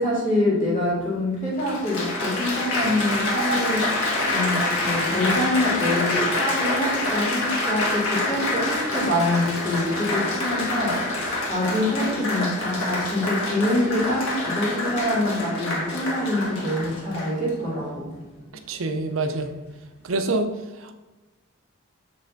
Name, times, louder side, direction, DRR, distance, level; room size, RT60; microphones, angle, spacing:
voice 1, 0.0-4.0 4.3-11.1 11.5-18.1, left 1 dB, 35° left, -5 dB, 2.0 m, -25 dB
Applause, 0.8-0.9 1.6-17.5 18.2-18.6, left 2 dB, 75° left, 1.4 m, -26 dB
voice 2, 18.7-19.5 20.0-20.9, right 2 dB, 65° right, 7 dB, 0.6 m, -26 dB
7.3 x 3.3 x 3.9 m, 1.1 s
head